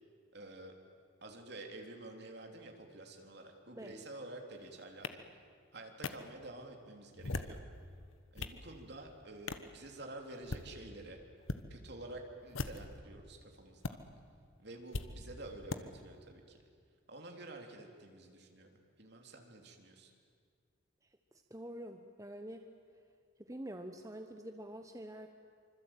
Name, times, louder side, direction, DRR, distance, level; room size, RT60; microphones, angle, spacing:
voice 1, 0.3-0.7 1.2-5.2 5.7-7.6 8.3-11.2 11.7-14.0 14.6-16.6 17.1-18.7 19.0-20.1, right 2 dB, 55° right, 3 dB, 3.5 m, -49 dB
sound 1, 5.0-5.1 6.0-6.1 7.1-7.6 8.1-8.6 9.5-9.7 10.3-10.7 11.4-11.6 12.5-13.0 13.8-13.9 14.9-15.1 15.7-15.8, left 3 dB, 85° left, 1.3 m, -39 dB
voice 2, 21.3-22.7 23.4-25.3, right 1 dB, 15° right, 5 dB, 1.0 m, -46 dB
26.0 x 25.5 x 9.1 m, 2.1 s
head